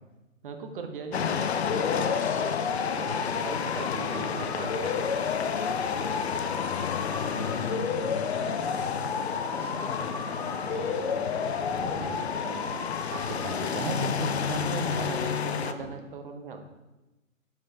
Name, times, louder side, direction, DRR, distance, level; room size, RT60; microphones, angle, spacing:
voice 1, 0.4-2.5 2.9-5.0 12.4-16.7, right 4 dB, 40° right, 5 dB, 0.9 m, -38 dB
sound 1, 1.1-15.7, left 7 dB, 55° left, 0.5 m, -31 dB
sound 2, 1.7-13.7, left 5 dB, 35° left, 0.8 m, -33 dB
voice 2, 4.0-4.5 7.1-12.2 15.8-15.9, left 2 dB, 5° left, -3 dB, 0.6 m, -41 dB
6.7 x 5.8 x 4.3 m, 1.0 s
figure-of-eight pair, 125°, 40 cm